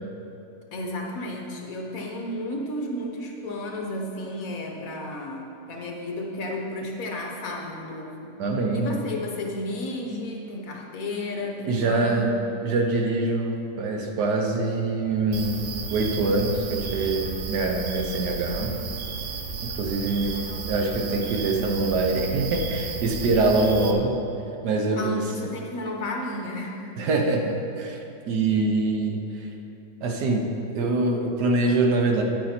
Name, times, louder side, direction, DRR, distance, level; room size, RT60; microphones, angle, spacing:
voice 1, 0.7-8.3 8.7-12.3 20.2-20.9 25.0-27.1, left 1 dB, 60° left, 0 dB, 1.4 m, -33 dB
voice 2, 8.4-8.9 11.6-12.3 12.6-18.7 19.8-20.4 20.7-24.2 24.6-25.2 27.0-28.0 28.3-29.2 30.0-30.5 30.7-32.2, right 3 dB, 75° right, 2 dB, 1.5 m, -24 dB
sound 1, 15.3-23.9, right 4 dB, 55° right, 0.9 m, -33 dB
9.9 x 8.9 x 4.4 m, 2.9 s
omnidirectional pair, 1.8 m